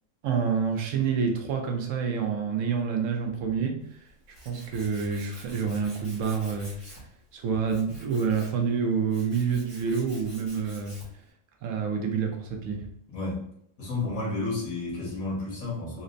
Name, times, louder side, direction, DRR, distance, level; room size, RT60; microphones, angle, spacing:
voice 1, 0.2-4.1 4.5-6.8 7.3-11.0 11.6-12.9, right 6 dB, 75° right, 3 dB, 1.0 m, -28 dB
Tools, 3.8-11.3, equal, 70° left, 1.7 m, -49 dB
voice 2, 13.1-13.5 13.8-16.0, left 2 dB, 85° left, -4 dB, 1.7 m, -31 dB
4.1 x 2.1 x 2.5 m, 0.71 s
omnidirectional pair, 1.4 m